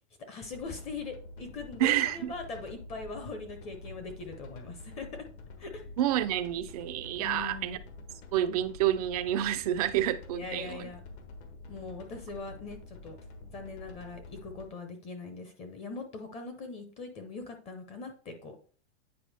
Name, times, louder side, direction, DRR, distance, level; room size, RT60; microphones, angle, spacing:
voice 1, 0.2-5.3 5.6-5.9 7.2-7.8 10.3-11.0 11.7-13.2 13.5-18.6, left 3 dB, 20° left, 6 dB, 0.7 m, -41 dB
sound 1, 0.5-14.6, left 2 dB, 65° left, 1.6 m, -48 dB
voice 2, 1.8-2.3 6.0-7.8 8.3-10.9, right 12 dB, 35° right, 12 dB, 0.4 m, -29 dB
9.1 x 4.7 x 3.4 m, 0.42 s
supercardioid pair, 165°, 35 cm